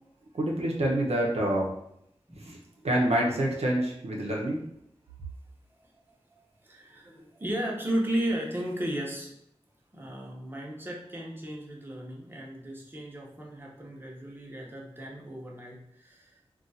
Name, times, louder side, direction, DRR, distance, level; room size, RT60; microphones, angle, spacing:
voice 1, 0.3-1.7 2.4-2.6 2.8-4.6, right 1 dB, 90° right, -2 dB, 0.6 m, -27 dB
voice 2, 2.3-2.7 5.7-5.9 6.3-9.3 9.9-16.4, right 1 dB, 20° right, -2 dB, 0.8 m, -35 dB
2.4 x 2.3 x 4.0 m, 0.75 s
wide cardioid pair, 55°, 10 cm